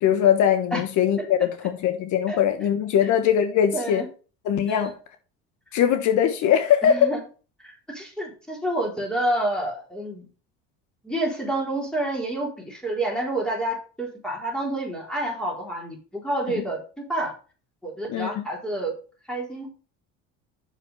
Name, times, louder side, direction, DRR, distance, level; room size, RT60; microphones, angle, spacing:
voice 1, 0.0-4.0 4.4-4.9 5.7-7.1 16.5-16.6 18.1-18.4, left 9 dB, 65° left, 1.3 m, -21 dB
voice 2, 3.7-4.1 4.7-4.9 6.8-7.2 7.6-10.3 11.0-16.8 17.1-17.3 17.8-18.9 19.3-19.7, right 1 dB, ahead, 3.8 m, -28 dB
6.6 x 6.2 x 5.5 m
supercardioid pair, 105°, 32 cm